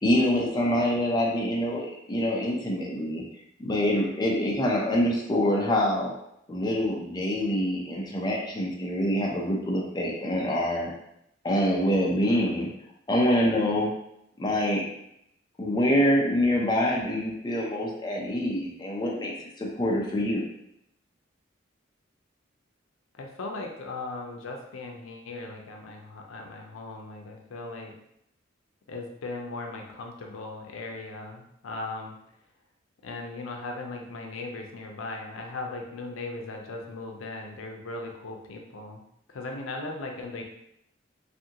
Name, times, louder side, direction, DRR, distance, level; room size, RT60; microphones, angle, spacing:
voice 1, 0.0-3.2 3.6-6.1 6.5-10.9 11.4-12.7 13.1-13.9 14.4-14.8 15.6-20.4, equal, 20° left, -2 dB, 0.4 m, -25 dB
voice 2, 23.2-28.0 28.9-32.2 33.0-39.0 39.3-40.4, left 2 dB, 90° left, 2 dB, 0.5 m, -38 dB
2.6 x 2.5 x 2.8 m, 0.76 s
head